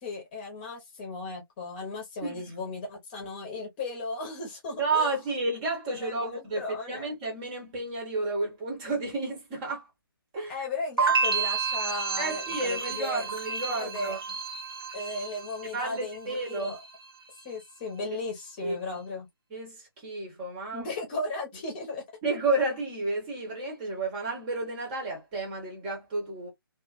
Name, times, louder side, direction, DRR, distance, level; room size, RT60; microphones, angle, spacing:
voice 1, 0.0-5.1 5.9-7.1 10.5-14.2 14.9-16.8 17.4-19.3 20.7-22.0, left 3 dB, 25° left, 1.0 m, -36 dB
voice 2, 4.8-9.8 10.3-10.6 12.2-14.2 15.7-16.7 18.6-18.8 19.5-20.9 22.2-26.5, right 2 dB, 20° right, 1.1 m, -31 dB
sound 1, 11.0-16.0 16.3-16.9, right 5 dB, 75° right, 1.3 m, -30 dB
2.6 x 2.4 x 2.4 m
figure-of-eight pair, 150°, 13 cm